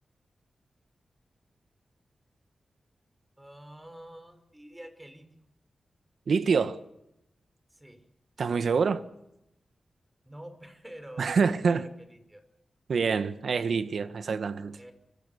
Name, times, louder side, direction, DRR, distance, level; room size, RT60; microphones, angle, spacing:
voice 1, 3.4-5.3 7.7-8.0 10.2-12.4 14.7-14.9, right 1 dB, 10° right, 5.2 m, -47 dB
voice 2, 6.3-6.8 8.4-9.0 11.2-11.9 12.9-14.8, right 5 dB, 75° right, 1.5 m, -26 dB
25.0 x 24.0 x 7.1 m
wide cardioid pair, 85°, 0 cm